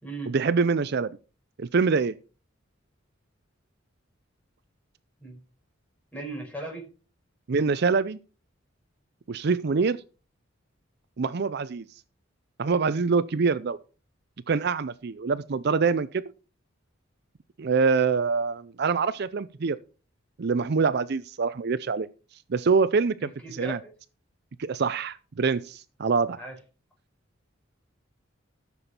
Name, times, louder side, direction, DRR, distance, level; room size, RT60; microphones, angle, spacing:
voice 1, 0.3-1.1 1.6-2.1 7.5-8.2 9.3-10.0 11.2-11.8 12.6-13.8 14.5-16.2 17.6-19.8 20.4-22.1 22.5-23.8 24.6-26.4, right 5 dB, 55° right, 0.5 m, -25 dB
voice 2, 6.1-6.8 23.2-23.9 26.4-26.5, right 2 dB, 5° left, 5.4 m, -37 dB
14.0 x 7.0 x 4.4 m
head